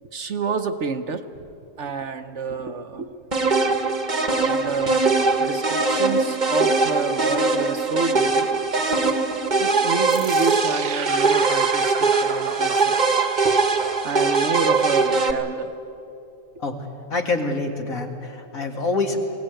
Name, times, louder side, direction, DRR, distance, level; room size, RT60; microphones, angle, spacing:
voice 1, 0.0-1.2 1.8-3.1 4.4-5.1 5.4-8.5 9.6-13.0 13.4-13.6 14.0-15.7, right 4 dB, 55° right, 8 dB, 1.1 m, -28 dB
sound 1, 3.3-15.3, right 3 dB, 35° right, 1.2 m, -21 dB
sound 2, 10.1-15.4, right 7 dB, 90° right, 1.5 m, -34 dB
voice 2, 17.1-19.2, left 3 dB, 65° left, 3 dB, 2.4 m, -26 dB
21.0 x 17.5 x 9.0 m, 2.8 s
omnidirectional pair, 1.6 m